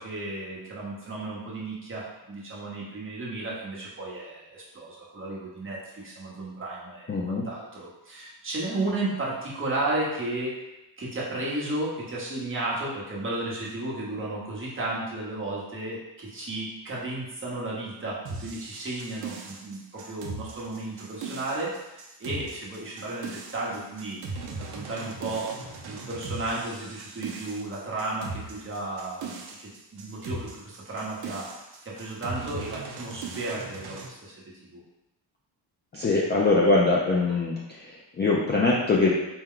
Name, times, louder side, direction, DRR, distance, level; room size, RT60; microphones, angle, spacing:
voice 1, 0.0-10.6 11.0-24.2 24.7-25.5 25.9-29.3 29.6-34.4 34.6-34.8 35.9-36.0, right 2 dB, 25° right, -6 dB, 0.9 m, -33 dB
voice 2, 7.1-7.4 35.9-37.6 37.8-39.1, left 3 dB, 25° left, -5 dB, 0.3 m, -22 dB
sound 1, 18.2-34.1, right 4 dB, 55° right, 0.6 m, -39 dB
4.4 x 2.2 x 3.7 m, 0.94 s
wide cardioid pair, 170°, 46 cm